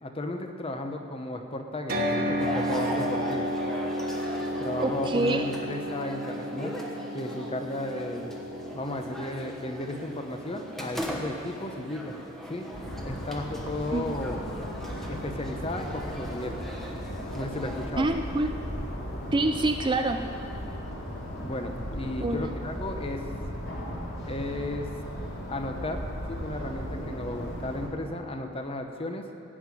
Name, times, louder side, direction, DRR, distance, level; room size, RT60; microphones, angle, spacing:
voice 1, 0.0-3.5 4.6-6.8 7.1-8.4 8.7-12.1 12.5-12.7 13.0-14.4 15.1-16.6 17.3-18.1 21.4-23.2 24.2-24.9 25.5-29.2, left 1 dB, 25° left, 5 dB, 0.9 m, -34 dB
sound 1, 1.9-16.0, equal, 45° right, 1.4 m, -34 dB
sound 2, 2.4-17.9, equal, ahead, 1.1 m, -40 dB
voice 2, 4.8-5.5 13.9-14.0 18.0-18.5 19.3-20.2 22.2-22.4, right 2 dB, 20° right, 6 dB, 0.4 m, -26 dB
sound 3, 12.7-27.9, equal, 55° left, 2.5 m, -36 dB
16.5 x 5.8 x 9.0 m, 2.6 s
head